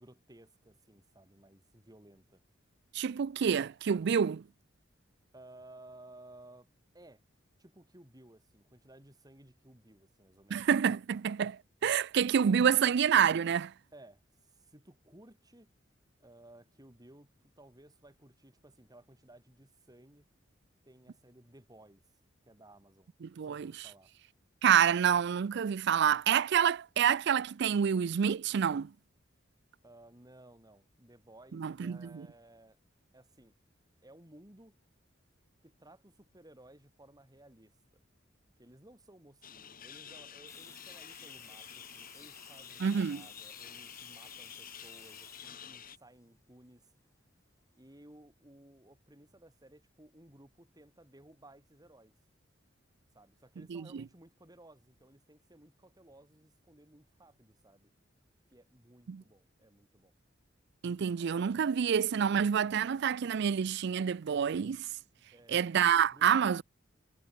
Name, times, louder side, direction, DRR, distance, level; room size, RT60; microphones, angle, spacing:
voice 1, 0.0-2.4 5.3-6.7 6.9-7.2 7.6-10.7 13.9-15.7 16.2-20.3 20.8-22.0 22.5-24.1 29.8-32.8 33.1-33.5 34.0-34.7 35.6-37.8 38.6-46.9 47.8-52.1 53.1-57.9 58.5-60.1 65.3-65.7 66.1-66.5, right 1 dB, 20° right, 3.7 m, -58 dB
voice 2, 2.9-4.4 10.5-13.7 23.2-23.9 24.6-28.9 31.5-32.3 42.8-43.2 53.7-54.0 59.1-59.2 60.8-64.9 65.5-66.6, right 8 dB, 60° right, 0.4 m, -28 dB
sound 1, 39.4-46.0, left 8 dB, 50° left, 2.7 m, -49 dB
Water tap faucet / Sink (filling or washing), 40.5-48.1, left 4 dB, 15° left, 4.9 m, -56 dB
head